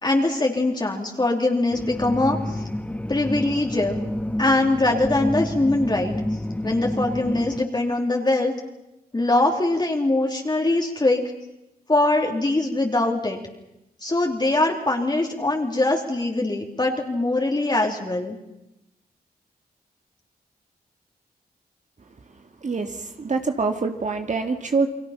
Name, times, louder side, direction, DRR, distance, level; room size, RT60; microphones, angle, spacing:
voice 1, 0.0-2.6 3.1-4.0 4.4-6.2 6.6-8.5 9.1-11.2 11.9-13.4 14.0-18.4, left 2 dB, 25° left, 0 dB, 3.0 m, -22 dB
sound 1, 1.7-7.6, left 1 dB, 10° left, 1.7 m, -29 dB
voice 2, 22.6-24.9, right 4 dB, 50° right, 5 dB, 1.9 m, -25 dB
29.5 x 21.5 x 5.7 m, 0.91 s
cardioid pair, 55°, 16 cm